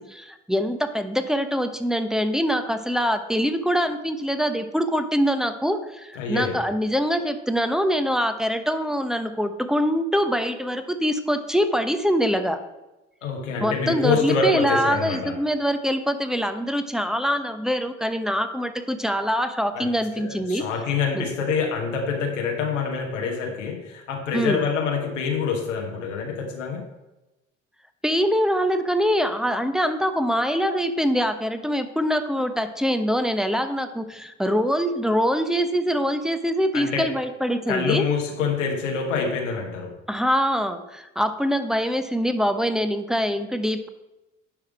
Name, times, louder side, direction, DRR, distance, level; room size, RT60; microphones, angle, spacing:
voice 1, 0.1-12.6 13.6-20.6 21.1-21.3 24.3-24.6 28.0-38.0 40.1-43.9, equal, ahead, 8 dB, 0.8 m, -24 dB
voice 2, 6.1-6.6 13.2-15.4 19.7-19.9 20.2-26.9 36.7-37.1 37.7-40.0, left 5 dB, 85° left, 0 dB, 1.3 m, -26 dB
10.5 x 4.9 x 4.8 m, 1.0 s
hypercardioid pair, 55°, 36 cm